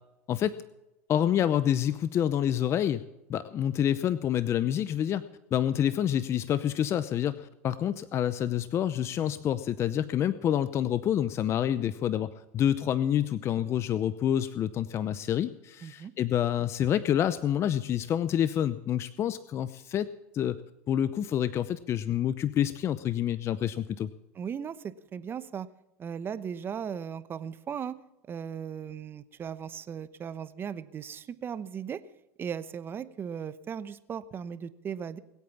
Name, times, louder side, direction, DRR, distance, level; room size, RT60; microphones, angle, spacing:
voice 1, 0.3-0.6 1.1-3.0 3.3-20.1 20.3-20.6 20.9-24.1, left 10 dB, 35° left, 15 dB, 0.7 m, -28 dB
voice 2, 24.3-25.7 26.0-28.0 28.3-32.0 32.4-35.2, right 7 dB, 30° right, 14 dB, 0.9 m, -37 dB
21.0 x 8.5 x 7.1 m, 0.94 s
hypercardioid pair, 105°, 8 cm